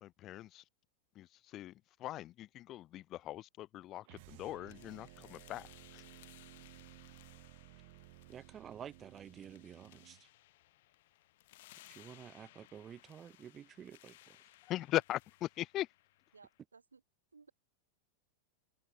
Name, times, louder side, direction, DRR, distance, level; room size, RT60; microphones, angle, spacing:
voice 1, 0.0-0.6 1.2-1.3 1.5-1.7 2.0-5.7 5.9-6.0 14.7-15.9, left 14 dB, 35° left, 0.6 m, -39 dB
sound 1, 4.0-10.2, right 25 dB, 50° right, 3.6 m, -57 dB
sound 2, 4.7-16.6, left 17 dB, 55° left, 3.5 m, -62 dB
voice 2, 8.3-10.3 11.9-14.4, right 9 dB, 25° right, 3.7 m, -51 dB
voice 3, 16.3-17.0 17.3-17.5, right 4 dB, 75° right, 2.4 m, -60 dB
figure-of-eight pair, 90°, 0 cm